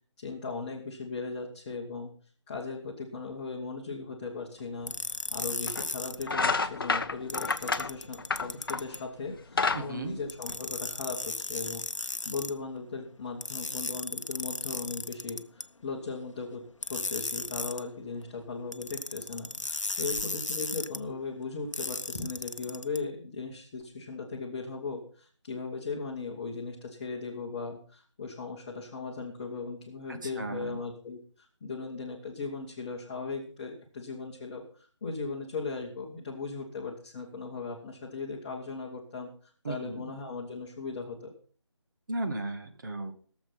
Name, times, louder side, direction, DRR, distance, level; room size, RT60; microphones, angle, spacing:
voice 1, 0.2-2.1 2.5-4.9 5.3-16.6 16.9-39.3 39.6-41.3, left 4 dB, 15° left, -2 dB, 1.1 m, -38 dB
sound 1, 4.9-6.2 7.3-9.0 10.3-12.5 13.4-15.6 16.8-17.8 18.7-21.0 21.7-23.0, left 3 dB, 80° left, 0.8 m, -35 dB
sound 2, 4.9-5.0 5.7-5.9 6.2-9.0 9.3-11.0, left 4 dB, 45° left, 0.7 m, -30 dB
voice 2, 9.7-10.2 30.1-30.8 39.6-40.1 42.1-43.1, right 2 dB, 40° right, 6 dB, 1.4 m, -35 dB
17.0 x 7.1 x 5.7 m, 0.43 s
figure-of-eight pair, 160°, 16 cm